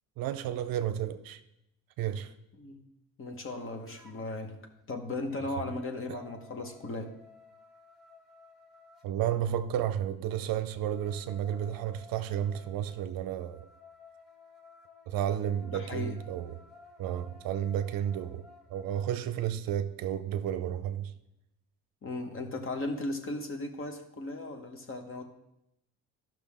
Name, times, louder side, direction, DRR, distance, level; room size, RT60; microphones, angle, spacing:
voice 1, 0.2-1.4 2.0-2.3 9.0-13.7 15.1-16.6 17.0-21.1, right 10 dB, 60° right, 0.6 m, -32 dB
voice 2, 3.2-4.6 4.9-7.1 15.7-16.2 22.0-25.2, left 2 dB, 35° left, 1.2 m, -36 dB
sound 1, 3.9-4.5 4.9-9.1 10.5-19.1, left 4 dB, ahead, 1.5 m, -56 dB
12.5 x 5.9 x 3.6 m
cardioid pair, 115°, 38 cm